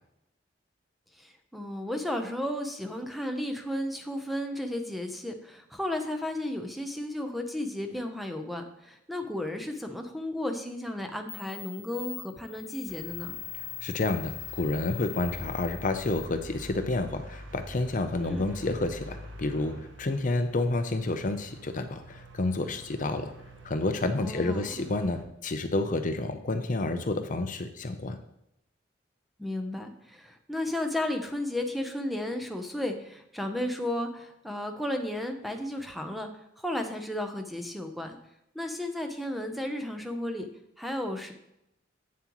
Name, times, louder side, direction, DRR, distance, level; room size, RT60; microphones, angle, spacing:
voice 1, 1.2-13.4 18.2-18.4 24.2-24.6 29.4-36.3 36.6-38.2 38.5-40.5 40.8-41.3, left 1 dB, ahead, 5 dB, 0.7 m, -33 dB
sound 1, 10.9-11.0 11.3-16.3, left 15 dB, 70° left, 0.8 m, -41 dB
sound 2, 12.9-25.2, right 1 dB, 80° right, 1.0 m, -46 dB
voice 2, 13.8-19.7 20.0-23.3 23.6-28.2, left 2 dB, 45° left, 8 dB, 0.6 m, -29 dB
8.5 x 7.4 x 3.0 m, 0.82 s
head